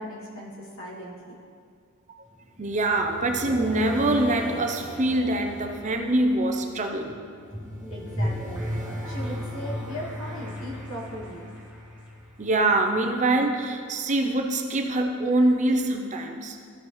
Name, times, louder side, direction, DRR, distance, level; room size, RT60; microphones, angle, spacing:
voice 1, 0.0-1.4 7.9-8.6 9.1-11.5, equal, 65° left, -6 dB, 2.3 m, -38 dB
sound 1, 2.3-13.0, equal, 10° right, 1.7 m, -36 dB
voice 2, 2.6-7.2 9.0-9.2 12.4-16.6, right 2 dB, 35° right, 4 dB, 0.5 m, -24 dB
14.5 x 5.7 x 3.2 m, 2.2 s
head